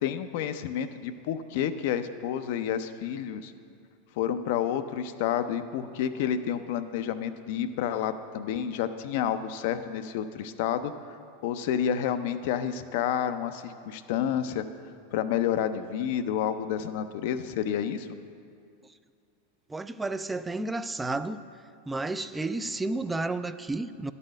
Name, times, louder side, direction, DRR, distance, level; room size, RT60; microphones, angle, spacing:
voice 1, 0.0-3.5 4.2-10.9 11.4-14.6 15.1-18.1, left 9 dB, 60° left, 0.4 m, -29 dB
voice 2, 19.7-21.4 21.9-24.1, right 2 dB, 10° right, 0.3 m, -31 dB
11.0 x 4.1 x 6.4 m
hypercardioid pair, 100°, 0 cm